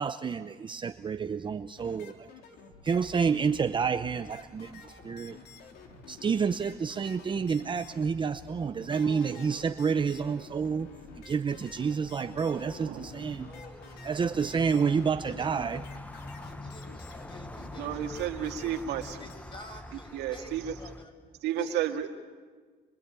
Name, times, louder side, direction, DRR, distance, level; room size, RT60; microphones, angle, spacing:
voice 1, 0.0-2.3 2.8-5.4 6.1-10.9 11.2-13.5 14.0-15.8, right 6 dB, 30° right, 10 dB, 0.7 m, -29 dB
sound 1, 1.8-19.4, left 5 dB, 75° left, 3.7 m, -51 dB
sound 2, 2.9-21.1, left 1 dB, 10° left, 0.8 m, -48 dB
voice 2, 8.6-9.8 12.3-15.8 16.4-18.6 19.2-21.1 21.6-22.0, left 1 dB, 30° left, 6 dB, 5.4 m, -51 dB
voice 3, 12.3-13.0 17.8-19.2 20.1-20.8 21.4-22.1, right 10 dB, 85° right, 4 dB, 2.1 m, -32 dB
26.5 x 24.0 x 9.0 m, 1.5 s
cardioid pair, 110°, 17 cm